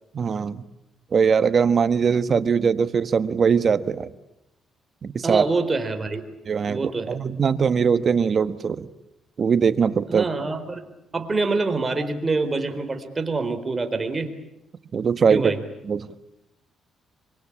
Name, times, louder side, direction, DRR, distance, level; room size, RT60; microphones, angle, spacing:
voice 1, 0.1-0.6 1.1-4.1 5.0-5.4 6.5-8.9 9.4-10.2 14.9-15.5 15.9-16.1, right 6 dB, 45° right, 12 dB, 1.3 m, -21 dB
voice 2, 5.2-6.2 6.7-7.2 10.1-10.9 11.1-14.3 15.3-15.6, right 3 dB, 25° right, 7 dB, 4.1 m, -25 dB
26.5 x 24.5 x 8.7 m, 0.87 s
cardioid pair, 90°, 0 cm